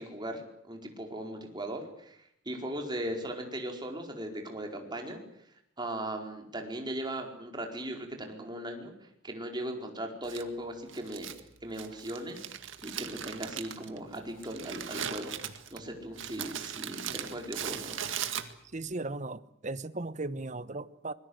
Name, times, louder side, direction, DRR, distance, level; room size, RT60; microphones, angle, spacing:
voice 1, 0.0-2.2 2.4-5.2 5.8-8.9 9.2-11.3 11.6-12.4 12.8-15.3 15.7-18.0, right 1 dB, 20° right, 4.5 m, -38 dB
Crumpling crinkling, 10.2-18.9, right 9 dB, 70° right, 2.0 m, -39 dB
voice 2, 18.7-21.1, right 2 dB, 35° right, 1.1 m, -37 dB
25.5 x 22.0 x 8.0 m
head